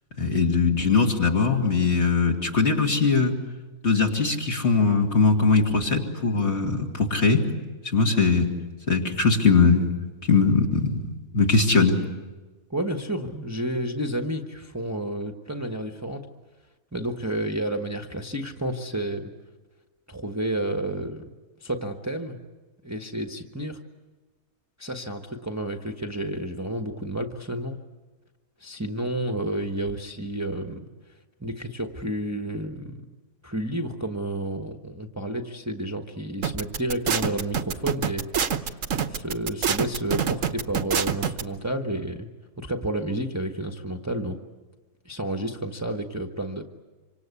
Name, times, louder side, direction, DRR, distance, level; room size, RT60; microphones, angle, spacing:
voice 1, 0.2-3.3 3.8-7.5 7.9-8.5 8.9-9.9 10.2-11.0 11.3-12.0, left 4 dB, 50° left, 1 dB, 2.9 m, -21 dB
voice 2, 12.7-16.2 16.9-19.3 20.1-21.2 21.6-22.4 22.8-23.8 24.8-27.8 28.6-30.9 31.4-33.1 33.4-38.7 39.1-42.3 42.6-44.4 45.0-46.6, right 1 dB, 10° right, 3 dB, 1.2 m, -30 dB
sound 1, 36.4-41.4, right 7 dB, 65° right, 1.4 m, -25 dB
26.5 x 26.0 x 8.3 m, 1.3 s
omnidirectional pair, 1.4 m